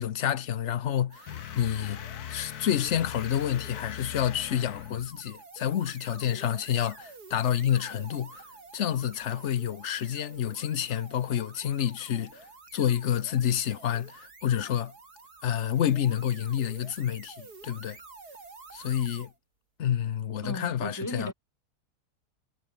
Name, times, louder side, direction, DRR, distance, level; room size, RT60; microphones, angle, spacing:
voice 1, 0.0-2.0 2.3-8.4 8.7-12.5 12.7-14.9 15.4-18.0 18.7-19.3 19.8-21.3, left 10 dB, 55° left, 1.0 m, -29 dB
sound 1, 1.1-19.4, right 4 dB, 80° right, 4.0 m, -50 dB
sound 2, 1.3-5.2, left 10 dB, 75° left, 1.4 m, -40 dB
voice 2, 20.4-21.3, equal, 10° left, 7.0 m, -35 dB
omnidirectional pair, 1.7 m